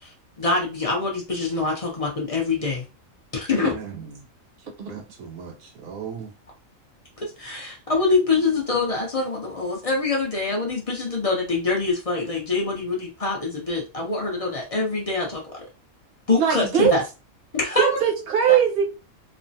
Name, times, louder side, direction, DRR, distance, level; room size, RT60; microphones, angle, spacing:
voice 1, 0.0-2.8 3.3-3.8 7.2-15.6 16.3-17.0 17.5-18.0 18.5-18.6, left 3 dB, 40° left, 0.5 m, -25 dB
voice 2, 3.6-4.3 4.9-6.3, right 7 dB, 85° right, 1.0 m, -38 dB
voice 3, 16.4-16.9 17.8-18.8, right 8 dB, 55° right, 0.8 m, -20 dB
3.1 x 2.1 x 2.6 m
omnidirectional pair, 1.4 m